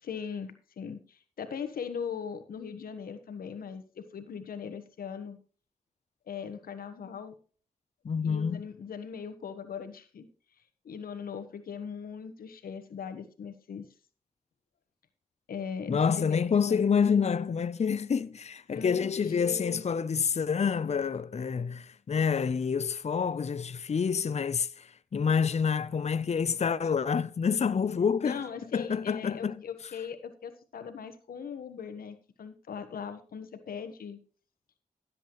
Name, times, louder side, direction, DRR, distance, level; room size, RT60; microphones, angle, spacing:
voice 1, 0.0-5.4 6.3-7.4 8.2-10.3 10.8-13.9 15.5-16.9 18.7-19.9 28.2-34.2, left 7 dB, 80° left, 1.2 m, -39 dB
voice 2, 8.0-8.6 15.9-28.4 28.7-29.6, left 6 dB, 50° left, 0.6 m, -28 dB
16.0 x 7.9 x 3.1 m
cardioid pair, 45°, 15 cm